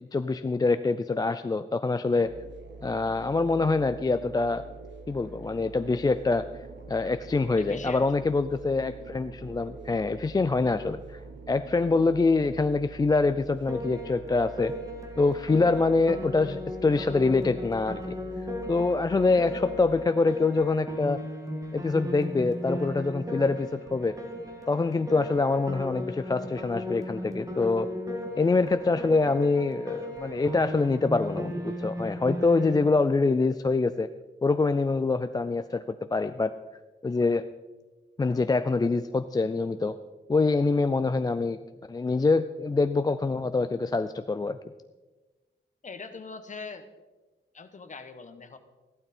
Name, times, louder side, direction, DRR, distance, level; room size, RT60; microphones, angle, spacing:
voice 1, 0.0-2.3 2.8-4.6 5.1-6.5 6.9-11.2 11.5-14.7 15.2-18.0 18.7-21.2 21.7-24.2 24.7-27.9 28.4-34.1 34.4-35.8 36.1-36.5 37.0-37.4 38.2-39.9 40.3-41.6 41.9-44.6, left 3 dB, 20° left, 10 dB, 0.3 m, -25 dB
sound 1, 2.2-20.0, right 4 dB, 80° right, 1.0 m, -45 dB
voice 2, 7.6-8.1 45.8-46.9 47.5-48.6, left 4 dB, 40° left, 8 dB, 1.1 m, -41 dB
Piano, 13.7-32.9, left 1 dB, 15° right, 1.9 m, -36 dB
15.0 x 12.0 x 4.3 m, 1.2 s
wide cardioid pair, 160°, 19 cm